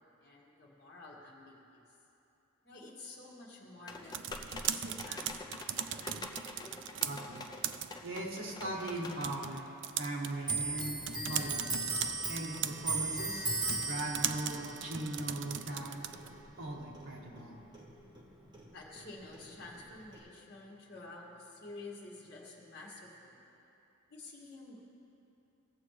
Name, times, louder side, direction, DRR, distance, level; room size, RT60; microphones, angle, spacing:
voice 1, 0.0-1.8 2.6-6.0 18.7-23.4 24.1-24.8, left 2 dB, 50° left, -4 dB, 1.8 m, -50 dB
sound 1, 3.9-9.3, left 3 dB, 20° left, 0.5 m, -46 dB
sound 2, 3.9-16.4, right 10 dB, 55° right, 0.3 m, -40 dB
voice 2, 7.0-7.5 8.0-9.6 10.0-11.8 12.3-13.5 13.9-16.0 16.6-17.6, right 1 dB, 80° right, -2 dB, 1.7 m, -39 dB
Clock, 10.4-17.5 17.7-19.1 19.3-20.2, right 3 dB, 20° right, 1.1 m, -38 dB
18.0 x 7.5 x 3.2 m, 2.8 s
head